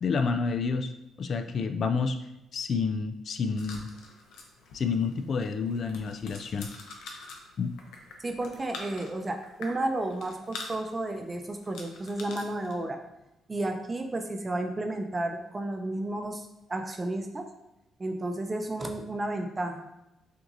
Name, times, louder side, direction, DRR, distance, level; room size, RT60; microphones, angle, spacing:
voice 1, 0.0-0.9 1.2-2.2 2.5-3.9 4.7-6.7 7.0-7.1 7.6-7.7, left 5 dB, 55° left, 6 dB, 0.3 m, -29 dB
sound 1, 3.6-12.8, left 3 dB, 85° left, 0.7 m, -46 dB
voice 2, 8.2-13.0 13.5-17.4 18.0-19.9, right 2 dB, 25° right, 4 dB, 0.6 m, -32 dB
5.9 x 2.6 x 2.6 m, 0.90 s
cardioid pair, 90°, 0 cm